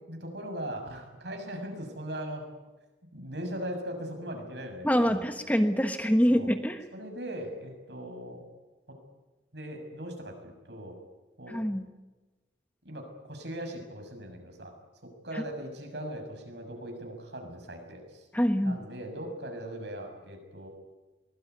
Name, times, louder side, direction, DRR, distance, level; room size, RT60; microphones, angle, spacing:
voice 1, 0.1-2.4 3.1-5.3 6.3-6.5 6.9-8.4 8.9-9.0 9.5-11.0 11.4-11.6 12.8-14.7 15.0-18.3 18.6-20.7, right 1 dB, 65° right, 4 dB, 6.8 m, -39 dB
voice 2, 4.8-6.8 11.5-11.9 15.3-15.4 18.3-18.8, equal, 10° left, 7 dB, 1.3 m, -25 dB
23.5 x 20.0 x 9.5 m, 1.2 s
head